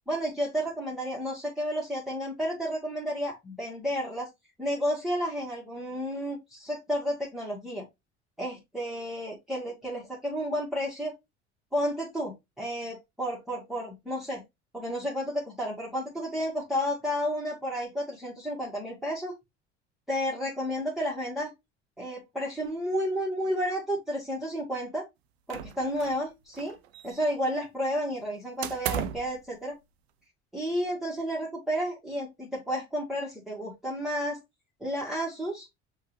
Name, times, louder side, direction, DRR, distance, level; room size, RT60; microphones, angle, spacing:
voice 1, 0.1-4.3 4.6-7.8 8.4-11.1 11.7-14.4 14.7-19.3 20.1-21.5 22.0-25.0 25.5-26.8 27.0-29.7 30.5-34.4 34.8-35.7, equal, ahead, -4 dB, 1.5 m, -31 dB
sound 1, 25.5-26.3 26.5-27.5 28.6-29.4, right 10 dB, 65° right, 0.6 m, -35 dB
6.3 x 2.7 x 3.0 m, 0.21 s
figure-of-eight pair, 65°, 33 cm